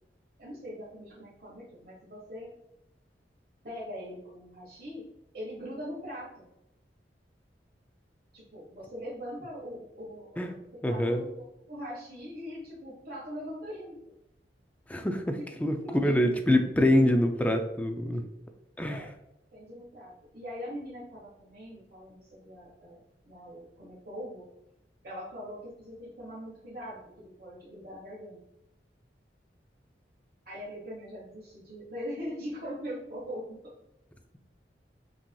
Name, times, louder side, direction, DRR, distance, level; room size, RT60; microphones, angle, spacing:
voice 1, 0.4-2.5 3.6-5.0 5.3-6.4 8.3-10.6 10.9-11.3 11.7-14.0 15.4-15.5 15.8-16.3 18.9-19.1 19.5-23.0 23.2-24.4 25.0-28.4 30.4-33.6, equal, 55° right, -6 dB, 1.2 m, -41 dB
voice 2, 10.8-11.2 14.9-18.2 18.8-19.0, left 1 dB, 10° left, 5 dB, 0.3 m, -25 dB
5.7 x 2.8 x 2.3 m, 0.83 s
head